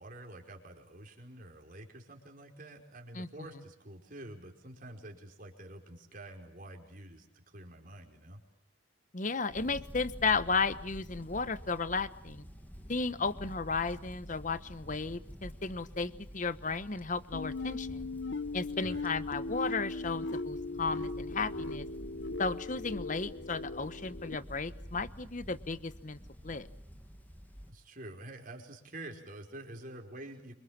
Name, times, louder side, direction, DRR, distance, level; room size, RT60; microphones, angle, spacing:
voice 1, 0.0-8.4 18.8-19.0 27.7-30.5, right 1 dB, 45° right, 2 dB, 5.0 m, -48 dB
voice 2, 9.1-12.4 12.9-18.1 18.5-21.9 22.4-26.7, left 4 dB, 40° left, 14 dB, 1.0 m, -34 dB
sound 1, 9.5-27.7, equal, 10° left, 2.2 m, -49 dB
sound 2, 17.3-24.4, left 3 dB, 65° left, 1.1 m, -38 dB
28.5 x 25.5 x 7.4 m, 0.72 s
head